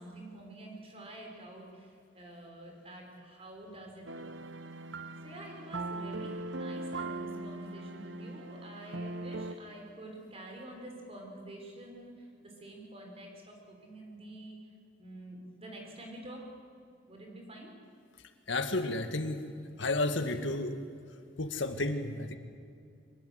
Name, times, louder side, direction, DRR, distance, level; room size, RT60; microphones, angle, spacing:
voice 1, 0.0-4.4 5.2-14.6 15.0-16.5 17.1-17.7, right 1 dB, 30° right, 1 dB, 5.5 m, -48 dB
sound 1, 4.1-9.5, right 2 dB, 65° right, 1.1 m, -40 dB
voice 2, 18.5-19.5 19.8-20.8 21.4-22.4, left 2 dB, 70° left, 7 dB, 1.9 m, -32 dB
24.0 x 22.0 x 8.1 m, 2.3 s
head